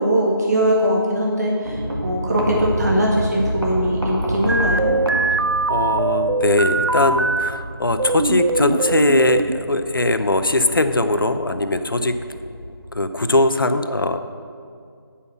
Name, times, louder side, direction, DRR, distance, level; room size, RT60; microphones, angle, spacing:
voice 1, 0.0-5.0, equal, 40° right, -2 dB, 1.1 m, -21 dB
sound 1, 1.6-12.9, equal, 85° right, 1.9 m, -29 dB
sound 2, 4.5-7.5 8.0-9.6, right 3 dB, 65° right, 0.4 m, -21 dB
voice 2, 5.7-12.1 12.9-14.2, left 2 dB, 60° left, 9 dB, 0.6 m, -20 dB
8.5 x 5.6 x 6.0 m, 2.3 s
figure-of-eight pair, 165°, 13 cm